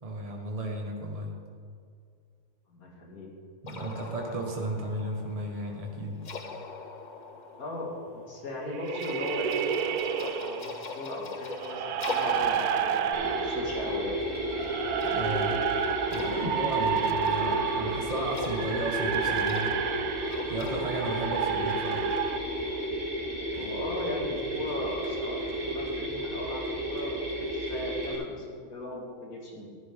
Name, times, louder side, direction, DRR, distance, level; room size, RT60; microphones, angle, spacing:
voice 1, 0.0-1.3 3.6-6.2 15.0-15.6 16.1-19.8 20.5-22.1, right 1 dB, 25° right, 0 dB, 1.4 m, -34 dB
voice 2, 2.7-3.3 7.6-14.1 23.5-29.7, left 1 dB, 85° left, -2 dB, 2.6 m, -37 dB
sound 1, 3.7-22.9, left 4 dB, 40° left, 0.7 m, -42 dB
sound 2, 8.7-10.8 11.5-22.4, right 9 dB, 90° right, 1.1 m, -31 dB
Mechanisms, 13.1-28.2, equal, 55° right, 3.5 m, -32 dB
14.5 x 10.5 x 3.7 m, 2.2 s
omnidirectional pair, 1.5 m